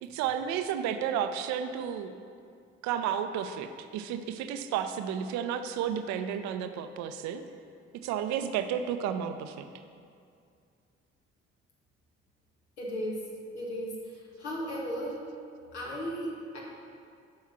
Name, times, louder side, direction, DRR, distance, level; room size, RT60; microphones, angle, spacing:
voice 1, 0.0-2.2 2.8-7.4 8.0-9.7, right 8 dB, 55° right, 9 dB, 0.6 m, -32 dB
voice 2, 12.8-13.2 13.5-14.1 14.4-15.2 15.7-16.6, equal, 80° left, -4 dB, 1.5 m, -35 dB
7.6 x 5.6 x 5.7 m, 2.4 s
figure-of-eight pair, 45°, 33 cm